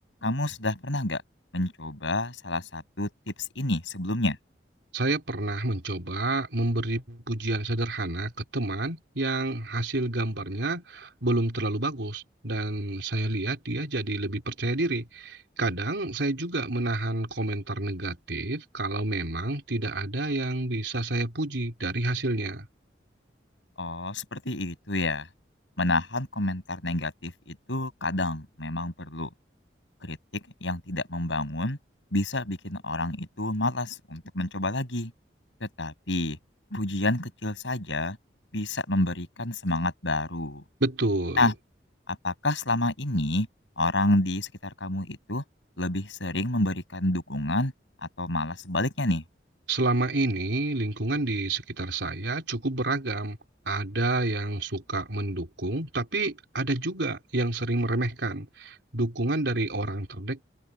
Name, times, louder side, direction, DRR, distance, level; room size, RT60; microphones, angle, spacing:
voice 1, 0.2-1.2 1.5-4.4 23.8-25.3 25.8-29.3 30.0-31.8 32.1-35.1 35.6-36.4 36.7-38.2 38.5-40.6 41.4-41.5 42.1-43.5 43.8-45.4 45.8-47.7 48.0-49.2, left 2 dB, 85° left, 6.4 m, -29 dB
voice 2, 4.9-22.7 40.8-41.5 49.7-53.4 53.7-60.4, right 2 dB, 75° right, 3.7 m, -29 dB
open air
head